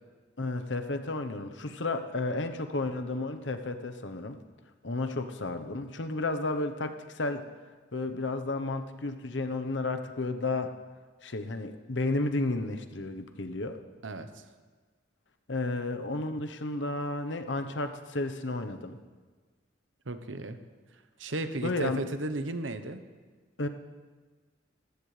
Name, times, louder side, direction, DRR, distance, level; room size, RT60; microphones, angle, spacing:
voice 1, 0.4-4.4 4.8-7.4 7.9-10.7 11.2-13.8 15.5-19.0 21.6-22.0 23.6-23.7, left 2 dB, 70° left, 7 dB, 1.0 m, -32 dB
voice 2, 14.0-14.4 20.1-20.6 21.2-23.0, right 2 dB, 90° right, 9 dB, 1.0 m, -34 dB
20.0 x 15.0 x 3.4 m, 1.4 s
head